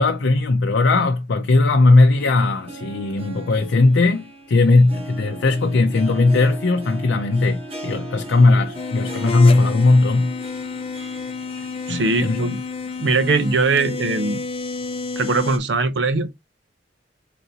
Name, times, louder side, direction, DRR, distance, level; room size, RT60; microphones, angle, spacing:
voice 1, 0.0-10.3 11.9-12.5, left 3 dB, 85° left, 0.5 m, -17 dB
Harp, 1.9-14.0 14.4-14.5 15.3-15.4, right 1 dB, 35° right, 1.2 m, -38 dB
sound 1, 8.7-15.6, left 4 dB, 30° left, 0.5 m, -30 dB
voice 2, 11.9-12.6 13.0-14.5 15.2-16.3, right 3 dB, 70° right, 0.6 m, -21 dB
4.0 x 3.7 x 2.8 m
head